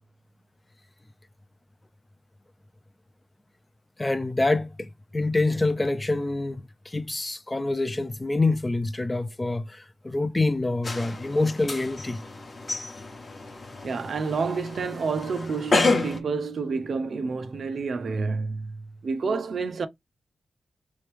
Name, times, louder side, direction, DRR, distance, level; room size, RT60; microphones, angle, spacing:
voice 1, 4.0-12.2, left 2 dB, 15° left, 0.4 m, -26 dB
sound 1, 10.8-16.2, left 3 dB, 35° left, 0.9 m, -30 dB
voice 2, 13.8-19.9, right 4 dB, 55° right, 0.5 m, -29 dB
3.4 x 3.1 x 3.3 m
wide cardioid pair, 165°, 0 cm